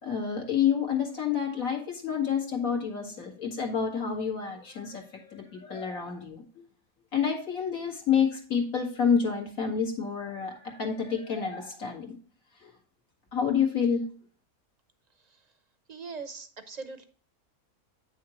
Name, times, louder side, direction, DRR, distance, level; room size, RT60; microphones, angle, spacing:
voice 1, 0.0-6.4 7.1-12.2 12.6-12.7 13.3-14.0, left 7 dB, 70° left, 1 dB, 2.1 m, -28 dB
voice 2, 15.9-17.1, right 4 dB, 40° right, 9 dB, 0.7 m, -40 dB
8.8 x 6.3 x 3.0 m, 0.42 s
omnidirectional pair, 1.5 m